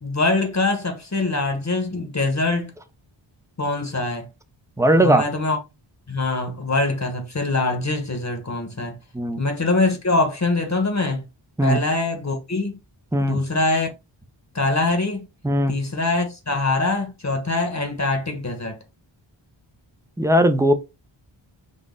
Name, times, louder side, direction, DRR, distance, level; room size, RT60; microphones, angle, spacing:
voice 1, 0.0-2.7 3.6-4.3 5.0-5.6 6.1-9.0 9.4-11.2 11.6-12.8 13.2-13.9 14.5-15.3 15.7-18.8, left 2 dB, 35° left, 1.1 m, -23 dB
voice 2, 4.8-5.2 9.1-9.4 11.6-11.8 13.1-13.4 15.4-15.7 20.2-20.7, right 1 dB, 5° right, 0.6 m, -18 dB
4.1 x 2.4 x 3.7 m
wide cardioid pair, 55°, 49 cm